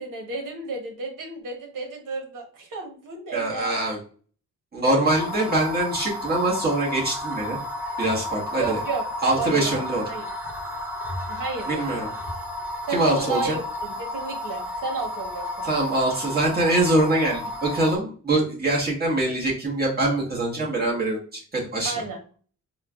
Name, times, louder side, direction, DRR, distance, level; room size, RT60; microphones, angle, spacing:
voice 1, 0.0-3.8 5.4-5.5 8.5-9.0 9.4-9.8 10.1-10.3 11.3-12.1 12.9-15.7 21.8-22.2, right 4 dB, 85° right, 2 dB, 1.1 m, -32 dB
voice 2, 3.3-4.0 4.7-7.6 8.0-8.8 9.2-10.0 11.7-12.1 12.9-13.6 15.6-21.9, right 2 dB, 30° right, -4 dB, 1.2 m, -24 dB
sound 1, 5.0-18.0, left 1 dB, 5° right, 0.6 m, -32 dB
4.4 x 2.2 x 2.3 m, 0.42 s
wide cardioid pair, 155°, 32 cm